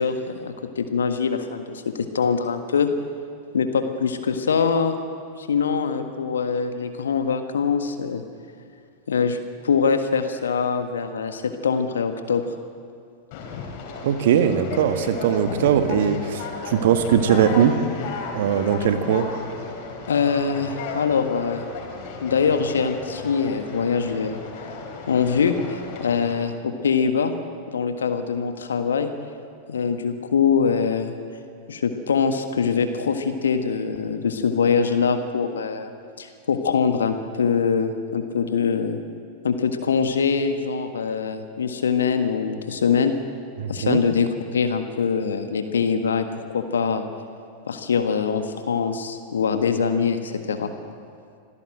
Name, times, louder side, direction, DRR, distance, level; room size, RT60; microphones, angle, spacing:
voice 1, 0.0-2.9 3.5-5.0 5.4-8.2 9.1-9.4 9.6-12.4 20.1-21.6 22.2-24.7 25.1-27.3 27.7-29.1 29.7-31.1 31.7-35.9 36.2-39.0 39.4-43.1 43.7-47.0 47.6-50.7, left 6 dB, 70° left, 7 dB, 1.5 m, -23 dB
Conversation, 13.3-26.4, left 4 dB, 45° left, 4.9 m, -34 dB
voice 2, 14.0-17.7 18.3-19.2 43.6-44.0, right 8 dB, 55° right, 7 dB, 1.8 m, -20 dB
26.5 x 17.0 x 7.8 m, 2.3 s
figure-of-eight pair, 90°, 0 cm